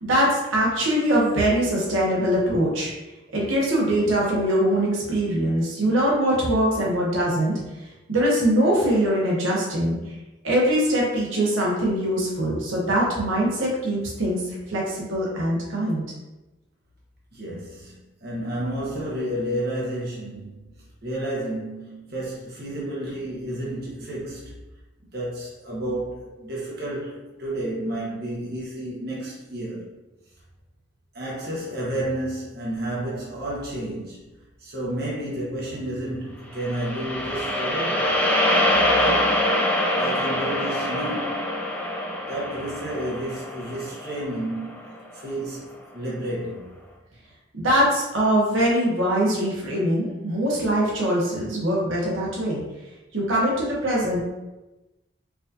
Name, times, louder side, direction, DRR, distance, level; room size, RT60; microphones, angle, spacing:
voice 1, 0.0-2.9 3.3-7.6 8.1-10.0 10.4-16.0 47.5-52.6 53.1-54.2, right 1 dB, 85° right, -4 dB, 1.1 m, -22 dB
voice 2, 17.3-18.0 18.2-20.7 21.0-24.6 25.1-29.9 31.1-34.3 34.6-38.2 38.9-39.4 39.9-41.5 42.3-46.7, right 1 dB, 50° right, -6 dB, 1.0 m, -31 dB
sound 1, 36.6-44.9, left 1 dB, 5° left, 0.4 m, -24 dB
4.6 x 2.6 x 2.7 m, 1.0 s
head